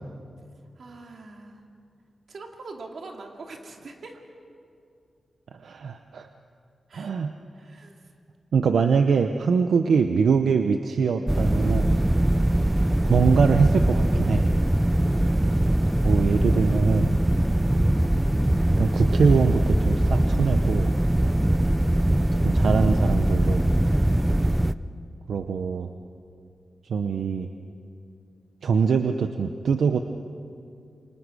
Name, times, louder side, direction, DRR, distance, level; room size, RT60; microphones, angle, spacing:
voice 1, 0.8-1.6 2.3-4.2 6.9-7.1 7.5-8.0 8.8-8.9 9.5-9.7, right 3 dB, 60° right, 2 dB, 2.7 m, -44 dB
voice 2, 5.6-6.3 6.9-7.3 8.5-12.0 13.1-14.5 16.0-17.1 18.5-20.9 22.4-23.7 25.3-25.9 26.8-27.5 28.6-30.0, right 5 dB, 90° right, 7 dB, 0.9 m, -23 dB
sound 1, 11.3-24.7, right 1 dB, 10° right, 0.5 m, -22 dB
28.5 x 25.0 x 6.3 m, 2.4 s
wide cardioid pair, 140°, 0 cm